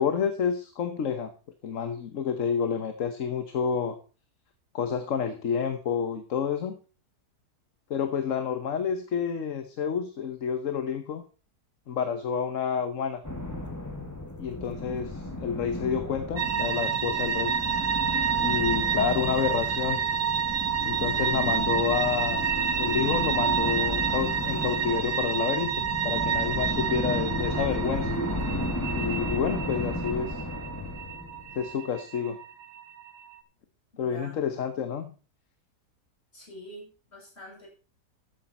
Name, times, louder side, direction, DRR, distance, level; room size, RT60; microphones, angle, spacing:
voice 1, 0.0-1.3 1.6-4.0 4.7-6.7 7.9-11.2 11.9-13.2 14.4-17.5 18.4-20.0 20.8-22.4 22.8-28.1 28.9-30.3 31.6-32.4 34.0-35.1, left 7 dB, 55° left, 9 dB, 1.3 m, -29 dB
sound 1, 13.2-31.7, left 1 dB, 10° left, 2.0 m, -34 dB
sound 2, 16.4-33.4, right 7 dB, 85° right, 1.8 m, -29 dB
voice 2, 29.3-30.0 33.9-34.4 36.3-37.7, equal, 40° left, -2 dB, 6.9 m, -46 dB
13.5 x 9.2 x 4.3 m, 0.35 s
omnidirectional pair, 1.7 m